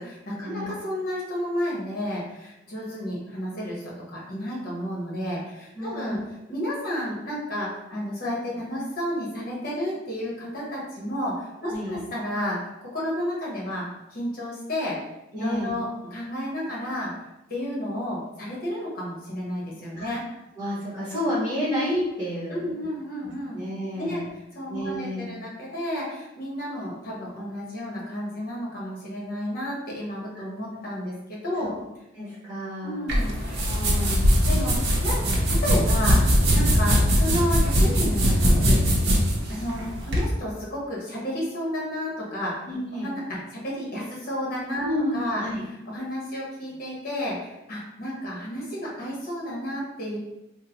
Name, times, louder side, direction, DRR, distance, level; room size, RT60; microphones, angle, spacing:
voice 1, 0.0-6.2 6.5-15.0 15.3-17.1 17.5-20.2 22.5-23.6 24.0-24.2 24.5-31.7 32.8-33.7 34.4-36.2 36.5-39.1 39.5-42.7 43.0-44.9 45.1-45.4 45.8-50.2, equal, 50° left, -5 dB, 1.1 m, -31 dB
voice 2, 5.7-6.2 11.7-12.0 15.3-15.7 19.9-20.1 20.6-22.8 23.5-24.3 24.7-25.3 32.1-33.0 33.6-34.2 39.0-39.2 42.7-43.1 44.8-45.6, left 1 dB, 15° right, -11 dB, 1.2 m, -30 dB
sound 1, 33.1-40.3, equal, 60° right, 0.7 m, -21 dB
3.7 x 2.1 x 2.9 m, 0.94 s
head